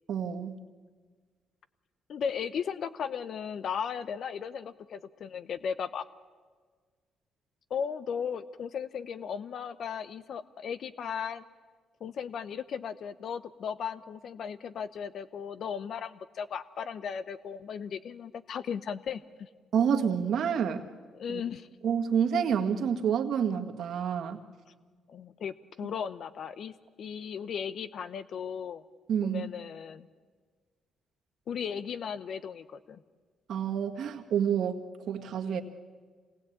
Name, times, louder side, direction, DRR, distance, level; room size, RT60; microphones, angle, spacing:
voice 1, 0.1-0.6 19.7-20.8 21.3-21.4 21.8-24.4 29.1-29.5 33.5-35.6, right 7 dB, 70° right, 4 dB, 1.8 m, -28 dB
voice 2, 2.1-6.0 7.7-11.4 12.0-19.5 21.1-21.7 25.1-28.8 29.2-30.0 31.5-33.0 35.5-35.6, left 7 dB, 60° left, 14 dB, 0.8 m, -36 dB
26.0 x 19.5 x 8.7 m, 1.5 s
cardioid pair, 90°, 0 cm